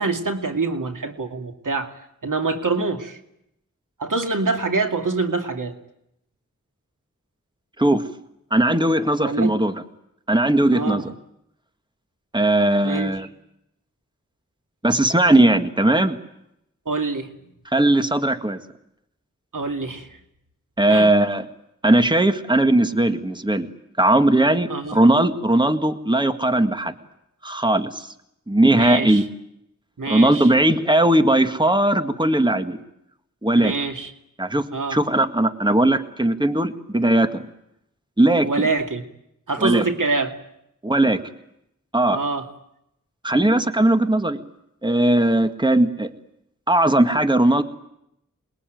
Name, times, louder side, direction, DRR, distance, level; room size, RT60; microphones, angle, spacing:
voice 1, 0.0-2.0 2.2-3.2 4.0-5.7 9.2-9.5 10.7-11.0 12.8-13.3 16.9-17.3 19.5-20.1 20.9-21.1 24.7-25.0 28.7-29.2 30.0-30.5 33.5-34.1 34.7-35.0 38.4-39.0 39.5-40.3 42.1-42.5, right 3 dB, 90° right, 5 dB, 2.6 m, -25 dB
voice 2, 8.5-9.7 10.3-11.0 12.3-13.3 14.8-16.2 17.7-18.6 20.8-21.4 21.8-23.7 24.0-26.9 27.4-28.1 28.5-29.2 30.1-32.8 33.4-33.7 34.4-37.4 38.2-38.7 39.6-39.8 40.8-41.2 41.9-42.2 43.2-44.4 44.8-46.1 46.7-47.6, right 1 dB, 15° right, 8 dB, 1.9 m, -18 dB
27.5 x 21.5 x 9.4 m, 0.80 s
wide cardioid pair, 65°, 31 cm